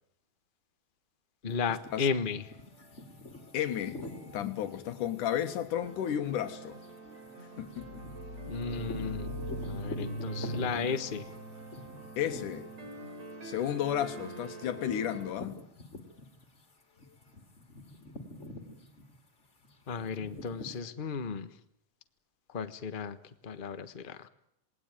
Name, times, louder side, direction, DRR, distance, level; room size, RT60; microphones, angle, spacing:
voice 1, 1.4-2.4 8.4-9.3 9.6-11.2 19.9-21.5 22.5-23.2 23.4-24.3, left 5 dB, 70° left, 0.5 m, -34 dB
sound 1, 1.5-16.6 17.0-20.8, left 2 dB, 25° left, 2.8 m, -47 dB
voice 2, 3.5-4.0 4.3-6.8 7.6-8.0 12.2-12.7 13.4-15.6, left 10 dB, 85° left, 3.1 m, -33 dB
sound 2, 5.8-15.3, right 3 dB, 60° right, 5.4 m, -47 dB
sound 3, 7.8-13.3, equal, 20° right, 4.6 m, -41 dB
28.0 x 20.5 x 9.1 m
omnidirectional pair, 3.5 m